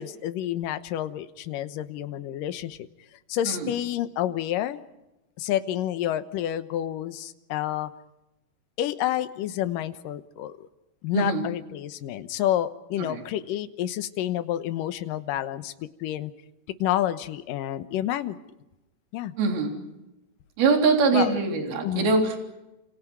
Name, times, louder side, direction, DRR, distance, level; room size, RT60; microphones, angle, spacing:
voice 1, 0.0-2.8 3.3-4.8 5.4-7.9 8.8-10.7 11.0-15.7 16.0-16.3 16.8-18.4 19.1-19.3 21.1-21.4 21.8-22.2, left 12 dB, 70° left, 10 dB, 2.4 m, -29 dB
voice 2, 19.4-19.7 20.6-22.4, right 4 dB, 65° right, 2 dB, 5.3 m, -23 dB
29.5 x 28.0 x 4.7 m, 0.96 s
omnidirectional pair, 4.7 m